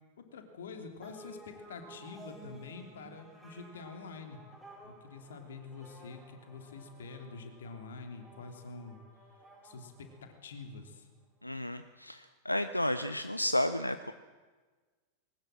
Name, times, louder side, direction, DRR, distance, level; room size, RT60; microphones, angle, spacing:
voice 1, 0.2-4.4 4.8-9.0 9.6-11.1, left 4 dB, 65° left, 6 dB, 3.0 m, -46 dB
sound 1, 1.0-10.8, right 1 dB, 5° right, 5.1 m, -55 dB
voice 2, 11.4-14.1, left 1 dB, 85° left, 12 dB, 0.7 m, -32 dB
21.0 x 19.5 x 7.6 m, 1.3 s
figure-of-eight pair, 90°, 0 cm